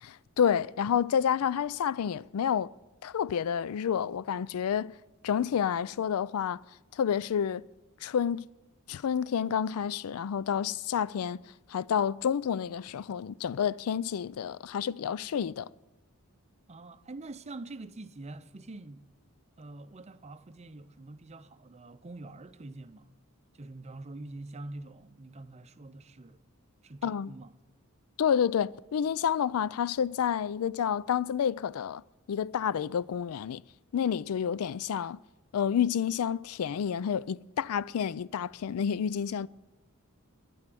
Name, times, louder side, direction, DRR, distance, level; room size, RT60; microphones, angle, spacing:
voice 1, 0.0-2.7 3.0-4.9 5.2-6.6 6.9-7.6 8.0-8.5 8.9-11.4 11.7-15.7 27.0-27.3 28.2-32.0 32.3-33.6 33.9-35.2 35.5-39.5, left 8 dB, 90° left, 0.4 m, -29 dB
voice 2, 16.7-19.1 19.6-23.1 23.5-26.4 26.8-27.5, right 2 dB, 30° right, 0.6 m, -45 dB
12.0 x 10.0 x 7.6 m
head